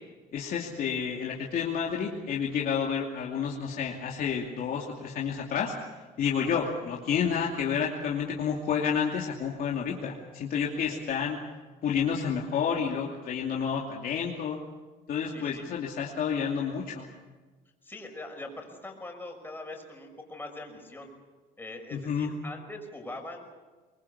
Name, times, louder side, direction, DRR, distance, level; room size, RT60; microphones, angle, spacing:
voice 1, 0.3-5.7 6.2-11.4 11.8-14.6 15.1-17.1 21.9-22.3, left 7 dB, 60° left, -2 dB, 2.7 m, -30 dB
voice 2, 15.3-15.6 17.8-21.1 21.6-23.5, left 2 dB, 10° left, 2 dB, 6.0 m, -42 dB
25.0 x 21.0 x 7.0 m, 1.3 s
cardioid pair, 110°, 17 cm